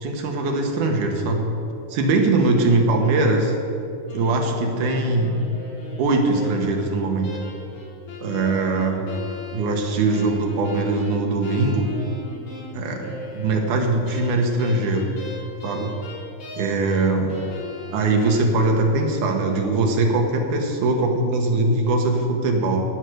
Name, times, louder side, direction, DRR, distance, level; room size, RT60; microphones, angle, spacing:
voice 1, 0.0-1.5 1.9-3.5 4.1-5.3 6.0-7.3 8.2-9.0 9.5-11.9 12.7-15.1 15.6-15.9 16.6-17.4 17.9-22.8, right 2 dB, 65° right, 2 dB, 2.5 m, -21 dB
sound 1, 4.1-6.8 7.2-13.7 14.1-17.0 17.3-18.4, left 3 dB, 85° left, 5.1 m, -38 dB
16.0 x 6.4 x 6.4 m, 2.8 s
omnidirectional pair, 4.2 m